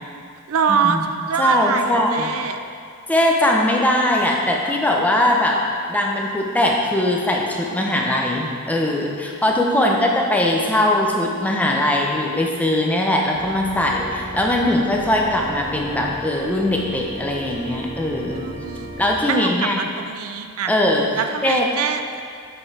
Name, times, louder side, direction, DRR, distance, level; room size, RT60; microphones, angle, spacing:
voice 1, 0.5-2.6 9.6-10.2 18.3-18.9 19.3-20.7 21.2-22.0, right 6 dB, 65° right, 7 dB, 0.4 m, -24 dB
voice 2, 1.4-2.3 3.1-5.6 5.9-18.4 19.0-19.8 20.7-21.0 21.4-21.7, left 1 dB, 5° left, -1 dB, 0.6 m, -20 dB
Organ, 13.3-19.1, right 1 dB, 10° right, 1.6 m, -35 dB
7.7 x 4.0 x 4.8 m, 2.2 s
head